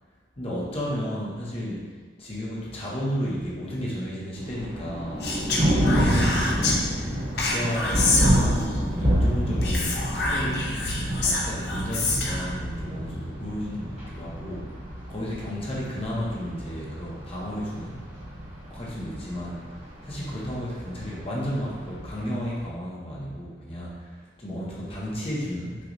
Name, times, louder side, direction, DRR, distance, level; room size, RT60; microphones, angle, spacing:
voice 1, 0.4-1.9 2.2-5.3 5.6-6.8 7.3-10.8 11.2-18.1 18.6-19.6 20.0-25.8, equal, 30° left, -6 dB, 0.9 m, -33 dB
Thunder, 4.4-22.3, equal, 35° right, 1.2 m, -28 dB
Speech, 5.2-6.8 7.4-8.8 9.6-12.5, left 2 dB, 60° left, 0.6 m, -27 dB
5.8 x 2.3 x 2.6 m, 1.5 s
head